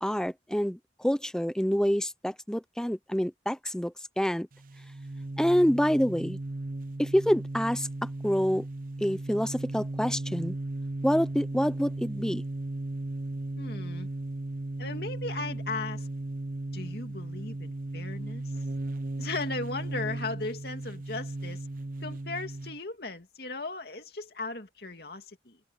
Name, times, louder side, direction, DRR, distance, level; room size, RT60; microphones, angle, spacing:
voice 1, 0.0-4.5 5.4-6.4 7.0-7.9 8.2-8.6 9.0-10.6 11.0-12.4, equal, 5° left, 0.7 m, -27 dB
sound 1, 4.5-22.8, right 2 dB, 50° right, 0.6 m, -36 dB
voice 2, 13.6-14.1 14.8-16.1 16.7-18.4 19.2-21.7 22.0-25.6, left 3 dB, 55° left, 2.6 m, -37 dB
open air
head